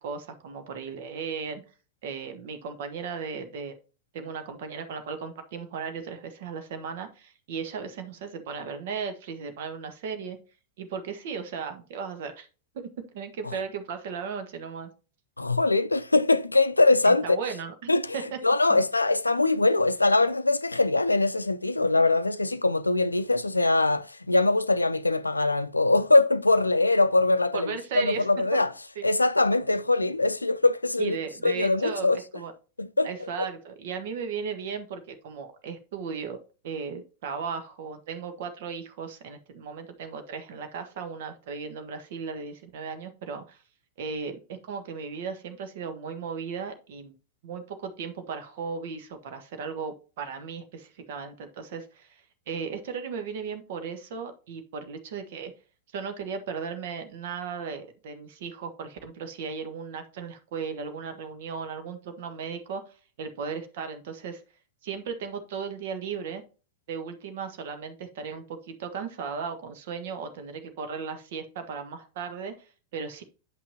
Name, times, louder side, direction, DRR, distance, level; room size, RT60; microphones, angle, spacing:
voice 1, 0.0-1.6 2.0-3.7 4.1-10.4 10.8-12.5 12.7-14.9 17.0-18.4 18.7-18.8 27.5-28.3 29.0-29.1 31.0-32.5 33.0-36.4 36.6-43.6 44.0-47.1 47.4-55.5 55.9-62.8 63.2-64.4 64.8-66.4 66.9-73.2, right 6 dB, 55° right, 1.3 m, -36 dB
voice 2, 15.4-17.4 17.9-18.2 18.4-28.7 29.0-31.2 31.4-32.2 32.8-33.5, left 2 dB, 80° left, 0.4 m, -22 dB
8.9 x 5.8 x 2.8 m
figure-of-eight pair, 90°, 0 cm